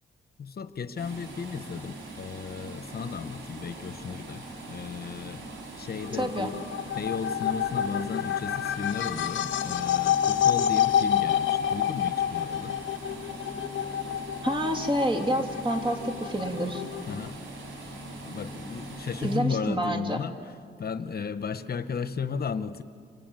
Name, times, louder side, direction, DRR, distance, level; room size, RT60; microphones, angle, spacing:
voice 1, 0.4-5.4 5.8-6.6 6.9-12.8 17.1-17.3 18.2-20.5 20.8-22.8, left 6 dB, 55° left, 11 dB, 1.0 m, -34 dB
sound 1, 1.0-19.4, right 1 dB, 85° right, 5.1 m, -41 dB
sound 2, 6.0-17.3, left 10 dB, 90° left, 0.6 m, -28 dB
voice 2, 6.2-6.5 14.4-16.8 19.2-20.2, right 1 dB, 25° right, 4 dB, 2.9 m, -28 dB
25.5 x 24.0 x 9.2 m, 2.2 s
cardioid pair, 80°, 19 cm